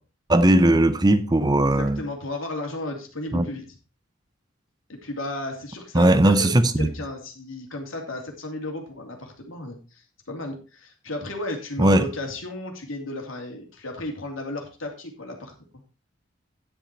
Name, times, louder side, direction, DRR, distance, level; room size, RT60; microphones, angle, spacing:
voice 1, 0.3-2.0 3.3-3.4 5.9-6.9 11.8-12.1, right 1 dB, 20° right, 0.7 m, -18 dB
voice 2, 1.6-3.6 4.9-6.5 6.8-15.5, left 2 dB, 75° left, 2.8 m, -34 dB
10.5 x 7.5 x 4.4 m
head